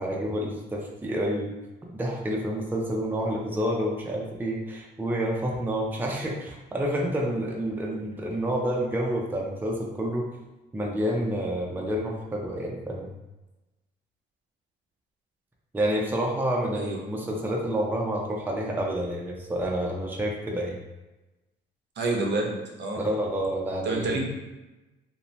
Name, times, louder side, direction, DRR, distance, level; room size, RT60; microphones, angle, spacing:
voice 1, 0.0-1.5 1.9-10.3 10.7-13.1 15.7-20.8 22.9-24.1, equal, 10° right, -2 dB, 0.5 m, -29 dB
voice 2, 22.0-23.0 23.8-24.3, right 2 dB, 60° right, 0 dB, 0.6 m, -28 dB
2.6 x 2.1 x 3.1 m, 1.0 s
cardioid pair, 90°, 20 cm